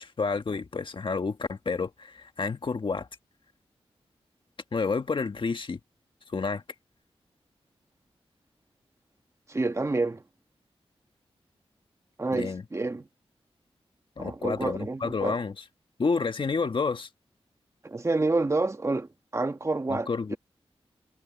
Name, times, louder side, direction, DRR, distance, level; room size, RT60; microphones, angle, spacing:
voice 1, 0.0-3.1 4.7-5.8 6.3-6.6 12.3-12.6 14.2-15.5 16.0-17.1 19.9-20.4, left 4 dB, 55° left, 1.5 m, -29 dB
voice 2, 9.5-10.2 12.2-13.0 14.2-15.4 17.8-20.4, right 3 dB, 30° right, 1.5 m, -28 dB
wide cardioid pair, 100°, 10 cm